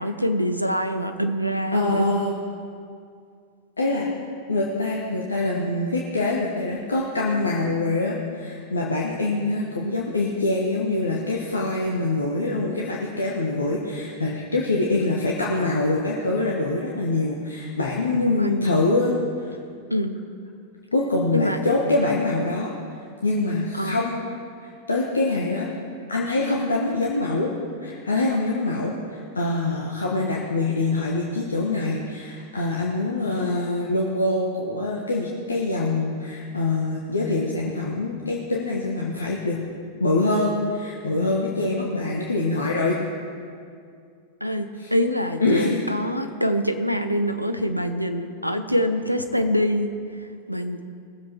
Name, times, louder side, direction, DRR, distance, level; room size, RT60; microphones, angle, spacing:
voice 1, 0.0-2.2 18.1-18.5 19.9-20.2 21.3-21.6 23.8-24.0 44.4-49.9 50.5-50.8, equal, 90° right, 8 dB, 0.7 m, -24 dB
voice 2, 1.7-2.3 3.8-4.1 4.5-19.5 20.9-22.7 23.2-24.2 24.6-25.7 26.1-27.5 27.8-39.6 40.0-43.0 44.7-44.9 45.4-45.7, left 2 dB, 75° left, -3 dB, 1.2 m, -24 dB
20.0 x 7.5 x 4.5 m, 2.3 s
figure-of-eight pair, 90°, 0 cm